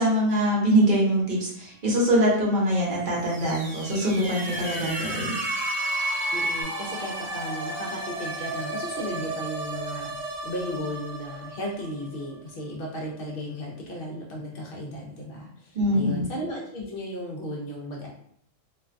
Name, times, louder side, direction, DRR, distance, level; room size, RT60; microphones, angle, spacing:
voice 1, 0.0-5.4 15.7-16.3, equal, 50° right, -4 dB, 0.8 m, -23 dB
sound 1, 3.0-12.8, right 2 dB, 85° right, 1.0 m, -35 dB
sound 2, 3.5-6.6, equal, 10° left, 0.9 m, -31 dB
voice 2, 6.3-18.1, equal, 60° left, -2 dB, 0.6 m, -35 dB
2.5 x 2.2 x 2.4 m, 0.67 s
omnidirectional pair, 1.3 m